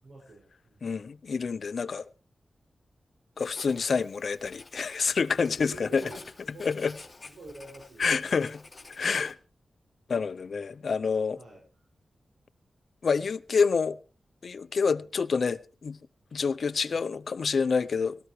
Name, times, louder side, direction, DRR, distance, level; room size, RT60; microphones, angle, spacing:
voice 1, 0.0-0.8 5.5-6.7 7.3-8.4 11.4-11.8 14.9-15.1, right 3 dB, 80° right, 6.1 m, -47 dB
voice 2, 0.8-2.0 3.4-6.1 6.6-6.9 8.0-8.6 8.9-9.4 10.1-11.4 13.0-14.0 14.4-16.0 16.3-18.2, left 5 dB, 70° left, 0.7 m, -27 dB
Writing, 3.4-9.3, left 3 dB, 35° left, 2.6 m, -50 dB
18.0 x 14.0 x 3.2 m
cardioid pair, 55°, 0 cm